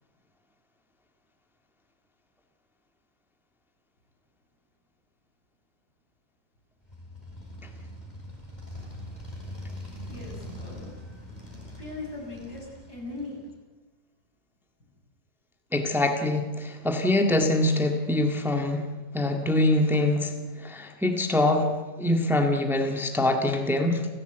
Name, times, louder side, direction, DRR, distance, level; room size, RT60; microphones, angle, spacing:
Motorcycle, 6.8-13.5, left 1 dB, 25° left, 4.8 m, -42 dB
voice 1, 10.0-10.8 11.8-13.4, left 3 dB, 75° left, -1 dB, 7.7 m, -39 dB
voice 2, 15.7-18.9 19.1-20.3 20.6-21.7 22.0-24.1, left 1 dB, ahead, 4 dB, 1.7 m, -24 dB
30.0 x 15.0 x 8.1 m, 1.2 s
omnidirectional pair, 1.7 m